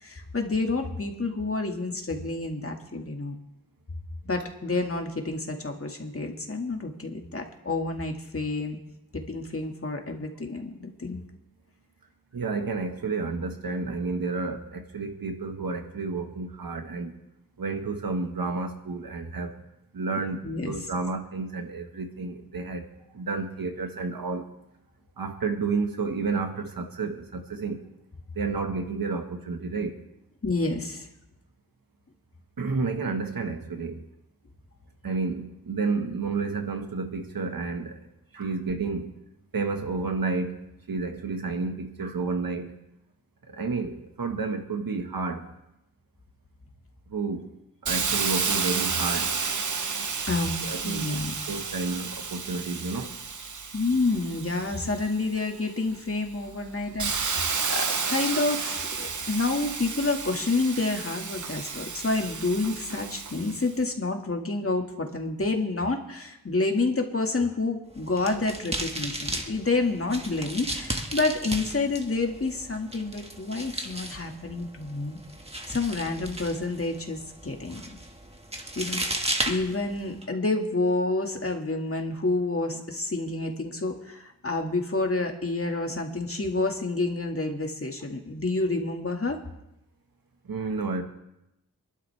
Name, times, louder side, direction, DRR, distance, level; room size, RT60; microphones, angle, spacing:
voice 1, 0.0-3.4 4.2-8.8 9.1-11.2 20.4-20.7 30.4-31.1 50.3-50.6 50.8-51.5 53.7-75.2 75.7-77.8 78.8-79.0 79.5-89.4, left 3 dB, 40° left, 3 dB, 2.1 m, -29 dB
voice 2, 12.3-17.1 17.6-19.5 19.9-24.5 25.2-27.9 28.3-30.0 32.6-34.0 35.0-38.0 38.3-39.2 39.5-42.8 43.5-45.5 47.1-47.6 47.8-49.3 50.6-51.2 51.5-53.2 77.8-77.9 90.4-91.0, right 4 dB, 85° right, 5 dB, 1.7 m, -31 dB
Hiss, 47.9-55.4 55.9-63.7, right 5 dB, 60° right, 1.1 m, -31 dB
sound 1, 67.9-80.2, right 1 dB, 20° right, 1.9 m, -35 dB
26.0 x 12.0 x 3.5 m, 0.88 s
wide cardioid pair, 70°, 34 cm